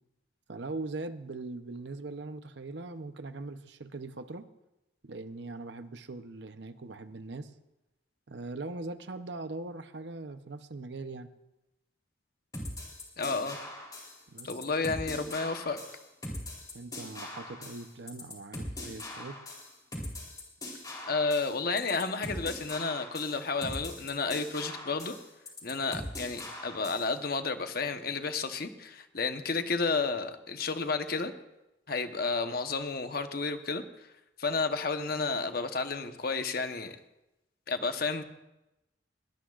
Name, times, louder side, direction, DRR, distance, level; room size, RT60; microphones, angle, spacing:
voice 1, 0.5-4.5 5.0-7.5 8.3-11.3 14.3-14.5 16.7-19.4, right 3 dB, 65° right, 10 dB, 0.8 m, -41 dB
sound 1, 12.5-27.1, left 1 dB, 20° left, 3.6 m, -41 dB
voice 2, 13.2-13.6 14.4-15.8 21.1-25.2 25.6-31.3 31.9-33.8 34.4-37.0 37.7-38.2, left 4 dB, 55° left, 7 dB, 1.0 m, -31 dB
21.5 x 19.0 x 2.5 m, 0.93 s
head